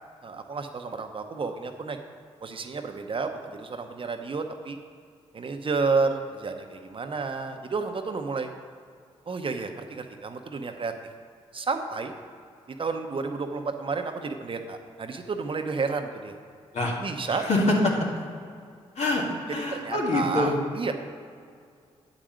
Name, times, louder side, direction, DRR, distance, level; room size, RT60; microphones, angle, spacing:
voice 1, 0.2-2.0 2.4-4.8 5.3-8.5 9.3-10.9 11.5-12.1 12.8-16.3 17.0-17.5 19.7-20.9, right 4 dB, 45° right, 6 dB, 0.9 m, -31 dB
voice 2, 17.3-18.2 19.0-20.5, left 2 dB, 70° left, -2 dB, 2.1 m, -25 dB
9.1 x 5.1 x 7.5 m, 2.2 s
cardioid pair, 65°, 12 cm